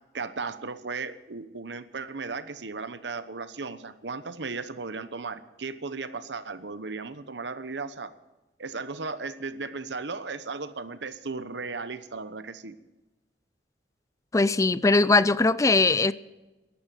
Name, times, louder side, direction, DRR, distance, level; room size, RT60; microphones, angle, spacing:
voice 1, 0.1-8.1 8.6-12.7, right 4 dB, 85° right, 1.0 m, -36 dB
voice 2, 14.3-16.1, left 3 dB, 20° left, 0.4 m, -20 dB
13.5 x 11.5 x 7.8 m
head